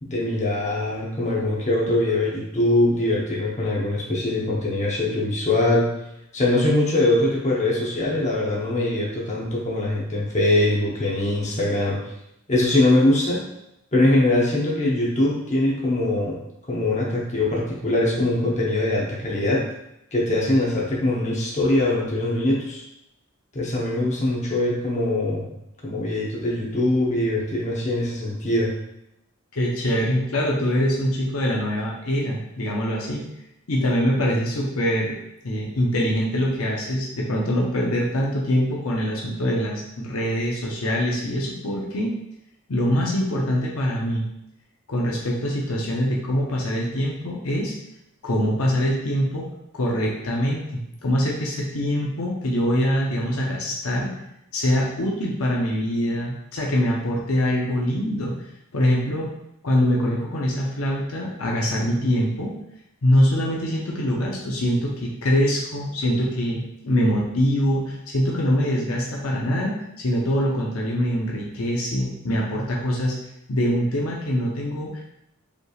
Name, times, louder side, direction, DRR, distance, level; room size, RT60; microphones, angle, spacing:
voice 1, 0.0-5.9 6.3-12.0 12.5-13.4 13.9-16.4 16.7-19.7 20.1-22.8 23.5-25.4 25.8-28.7, left 1 dB, 35° left, -4 dB, 0.9 m, -22 dB
voice 2, 29.5-33.2 33.7-35.1 35.4-42.1 42.7-44.3 44.9-47.7 48.2-49.5 49.7-54.1 54.5-58.4 58.7-59.3 59.6-62.5 63.0-73.1 73.5-75.0, equal, 70° left, -3 dB, 0.8 m, -24 dB
5.1 x 3.2 x 2.4 m, 0.82 s
head